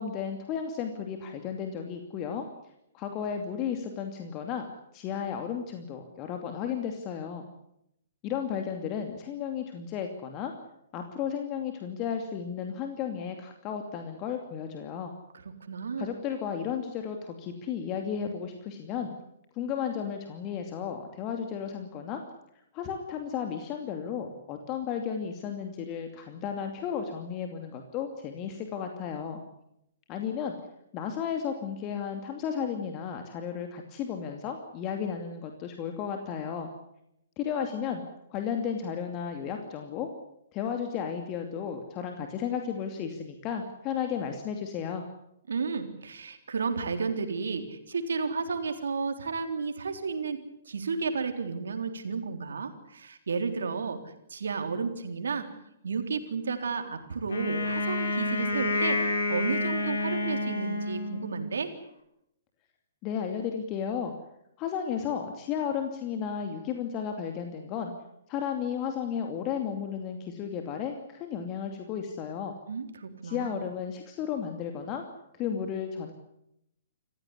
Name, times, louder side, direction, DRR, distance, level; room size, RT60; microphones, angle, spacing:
voice 1, 0.0-2.5 2.9-4.7 4.9-7.5 8.2-10.5 10.9-15.1 16.0-19.1 19.5-22.2 22.7-29.4 30.1-30.6 30.9-36.7 37.4-38.0 38.3-40.1 40.5-45.1 63.0-64.1 64.6-67.9 68.3-72.6 73.2-75.1 75.3-76.1, left 7 dB, 30° left, 4 dB, 2.6 m, -33 dB
voice 2, 15.6-16.1 45.5-50.4 50.7-55.5 55.8-61.7 72.7-73.6, right 5 dB, 65° right, 7 dB, 3.7 m, -32 dB
Wind instrument woodwind instrument, 57.3-61.5, left 2 dB, 65° left, 5.9 m, -29 dB
27.5 x 15.5 x 9.8 m, 0.80 s
figure-of-eight pair, 120°, 0 cm